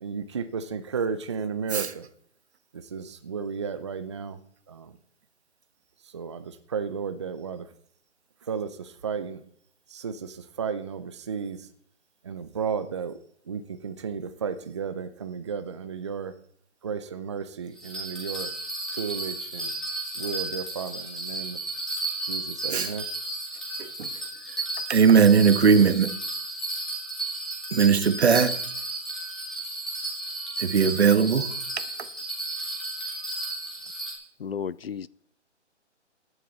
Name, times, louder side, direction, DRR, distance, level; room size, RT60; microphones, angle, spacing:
voice 1, 0.0-2.1 2.7-4.4 4.7-4.9 6.1-7.7 8.5-9.4 9.9-11.7 12.2-13.2 13.5-16.3 16.8-18.5 18.9-19.7 20.1-21.6 22.2-23.1, right 6 dB, 25° right, 0.6 m, -33 dB
Bell, 17.8-34.1, right 2 dB, ahead, 2.1 m, -33 dB
voice 2, 24.9-26.1 27.7-28.6 30.6-31.5, right 6 dB, 60° right, 1.4 m, -19 dB
voice 3, 34.4-35.1, left 7 dB, 55° left, 0.5 m, -33 dB
16.0 x 11.0 x 4.1 m
hypercardioid pair, 160°, 36 cm